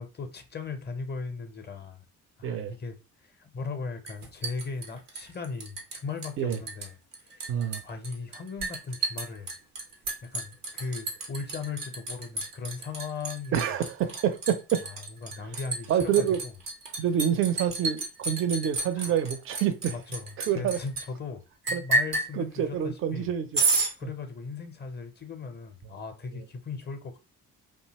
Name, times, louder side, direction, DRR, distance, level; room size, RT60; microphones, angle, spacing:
voice 1, 0.0-2.0 2.4-3.0 3.3-7.5 7.8-9.5 10.3-13.7 14.8-16.5 18.9-19.2 19.9-23.3 24.0-27.2, left 4 dB, 25° left, 0.5 m, -38 dB
voice 2, 2.4-2.7 6.4-6.6 7.5-7.8 13.5-14.8 15.9-16.4 17.0-19.9 20.5-20.8 21.7-21.8 22.3-23.6, right 9 dB, 30° right, 0.4 m, -27 dB
Liquid, 4.1-6.0 6.2-6.9 7.1-21.0 21.7-22.3 23.5-23.9, right 3 dB, 90° right, 0.5 m, -30 dB
2.7 x 2.2 x 2.8 m
figure-of-eight pair, 40°, 45 cm